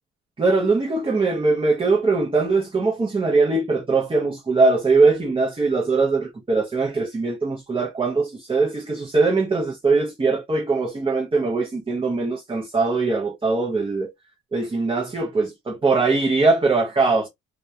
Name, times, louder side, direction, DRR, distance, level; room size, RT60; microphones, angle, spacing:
voice 1, 0.4-14.1 14.5-17.3, right 3 dB, 20° right, 0.6 m, -21 dB
2.2 x 2.2 x 2.6 m
cardioid pair, 90°, 30 cm